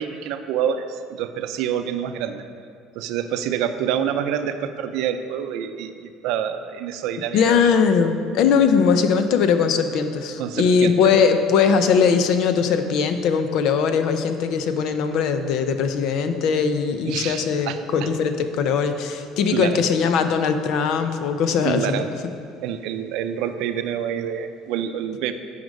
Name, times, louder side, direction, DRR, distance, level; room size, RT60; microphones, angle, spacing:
voice 1, 0.0-2.4 2.9-7.7 10.4-11.1 17.1-17.8 18.5-18.6 19.5-19.8 21.6-22.1 22.6-25.3, right 9 dB, 75° right, 9 dB, 0.5 m, -27 dB
voice 2, 7.3-22.0, left 6 dB, 65° left, 8 dB, 0.6 m, -20 dB
9.6 x 5.1 x 5.3 m, 2.3 s
cardioid pair, 135°, 0 cm